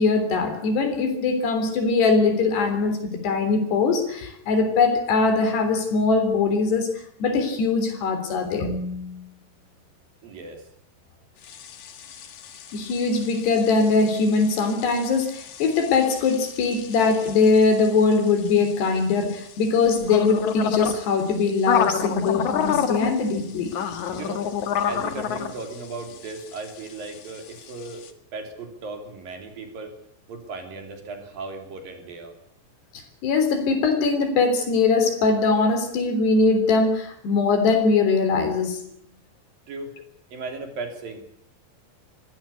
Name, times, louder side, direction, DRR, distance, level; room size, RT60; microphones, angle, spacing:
voice 1, 0.0-3.0 3.2-6.9 7.2-9.2 12.7-23.7 32.9-38.8, left 4 dB, 75° left, 8 dB, 5.5 m, -21 dB
voice 2, 10.2-10.6 24.1-24.4 24.9-28.1 28.3-29.9 30.3-32.3 39.7-39.9 40.3-41.3, right 3 dB, 55° right, 5 dB, 4.9 m, -36 dB
sound 1, 11.4-28.1, left 8 dB, 55° left, 2.5 m, -31 dB
23.5 x 16.5 x 8.5 m, 0.69 s
omnidirectional pair, 4.8 m